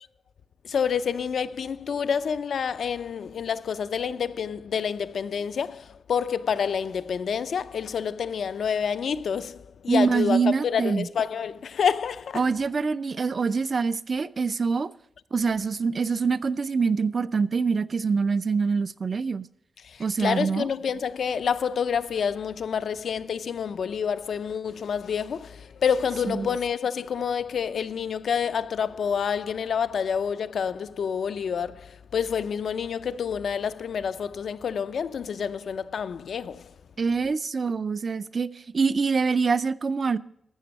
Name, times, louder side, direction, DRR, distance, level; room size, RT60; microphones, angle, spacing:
voice 1, 0.6-12.4 19.8-36.7, left 7 dB, 70° left, 0.4 m, -28 dB
voice 2, 9.9-11.1 12.3-14.9 15.3-19.5 20.0-20.7 26.3-26.6 37.0-40.2, right 5 dB, 40° right, 0.3 m, -25 dB
12.5 x 7.5 x 5.2 m
wide cardioid pair, 155°, 0 cm